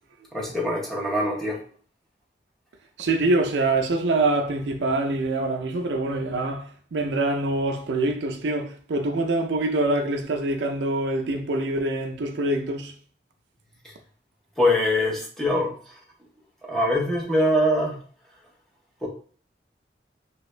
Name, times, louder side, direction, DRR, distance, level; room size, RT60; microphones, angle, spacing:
voice 1, 0.3-1.6 14.6-15.7 16.6-18.0 19.0-19.1, left 1 dB, ahead, 0.7 m, -23 dB
voice 2, 3.0-12.9, right 2 dB, 80° right, 0.5 m, -25 dB
2.9 x 2.5 x 3.2 m
head